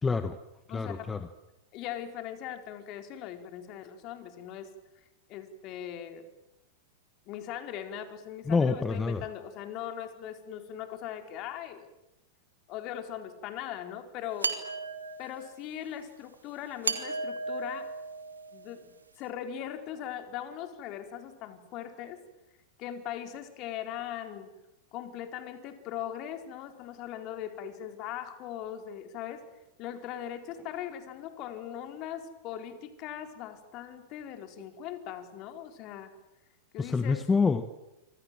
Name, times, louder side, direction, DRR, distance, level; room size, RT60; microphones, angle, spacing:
voice 1, 0.0-0.4 0.7-1.3 8.5-9.2 36.8-37.7, left 4 dB, 15° left, 11 dB, 1.4 m, -27 dB
voice 2, 0.7-1.2 1.7-4.7 5.3-6.3 7.3-11.9 12.7-14.5 15.2-17.9 18.5-22.2 22.8-24.5 24.9-29.4 29.8-36.1 36.7-37.2, left 10 dB, 45° left, 7 dB, 4.3 m, -40 dB
sound 1, 14.4-15.5 16.8-18.7, right 3 dB, 90° right, 2.4 m, -34 dB
28.0 x 25.5 x 7.7 m, 0.96 s
hypercardioid pair, 100°, 0 cm